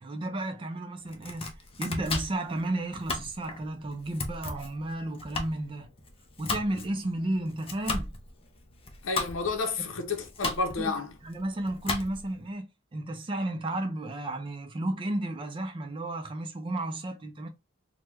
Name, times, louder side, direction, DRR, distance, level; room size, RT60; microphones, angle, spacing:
voice 1, 0.0-5.9 6.4-8.1 10.8-10.9 11.2-17.5, right 1 dB, 25° right, 0.4 m, -33 dB
Domestic sounds home sounds, 1.0-12.4, left 3 dB, 30° left, 0.6 m, -36 dB
voice 2, 9.0-11.1, left 4 dB, 80° left, 0.7 m, -31 dB
3.3 x 2.2 x 3.0 m
head